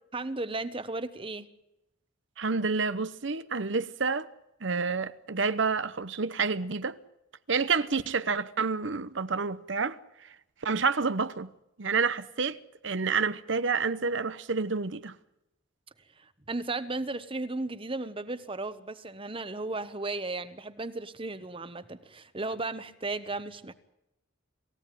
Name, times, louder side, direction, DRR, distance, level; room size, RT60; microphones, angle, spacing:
voice 1, 0.1-1.5 16.2-23.7, right 2 dB, 25° right, 1.2 m, -35 dB
voice 2, 2.4-4.3 4.6-7.0 7.5-10.0 10.6-11.5 11.8-12.6 12.8-15.1, right 4 dB, 65° right, 0.9 m, -29 dB
28.0 x 16.0 x 9.3 m
head